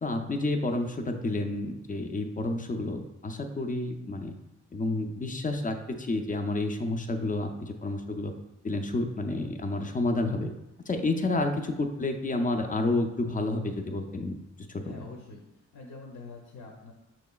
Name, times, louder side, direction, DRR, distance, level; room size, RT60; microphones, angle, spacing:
voice 1, 0.0-4.3 4.7-8.3 8.6-10.5 10.9-14.4 14.7-14.8, left 2 dB, 30° left, 5 dB, 0.4 m, -30 dB
voice 2, 14.8-16.9, left 3 dB, 85° left, 0 dB, 0.7 m, -46 dB
6.2 x 2.9 x 2.3 m, 0.96 s
wide cardioid pair, 125°, 29 cm